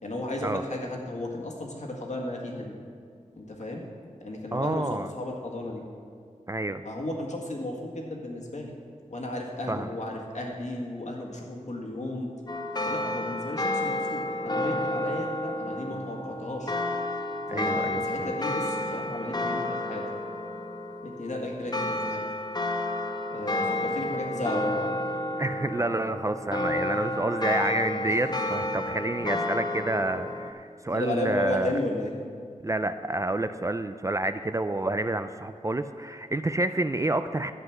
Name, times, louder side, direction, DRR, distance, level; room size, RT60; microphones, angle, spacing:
voice 1, 0.0-2.7 3.4-3.8 4.2-4.9 5.2-5.8 6.8-8.7 9.1-12.3 12.8-16.7 17.5-20.0 21.0-22.2 23.3-24.9 26.9-27.0 28.0-28.2 29.2-29.5 30.9-32.1, left 1 dB, 60° left, 0 dB, 1.8 m, -34 dB
voice 2, 4.5-5.1 6.5-6.8 9.7-9.9 17.5-18.3 25.4-31.8 32.6-37.5, right 2 dB, 25° right, 10 dB, 0.4 m, -29 dB
sound 1, 12.5-30.5, left 1 dB, 30° left, 0.7 m, -31 dB
11.0 x 7.9 x 6.0 m, 2.2 s
wide cardioid pair, 85°, 13 cm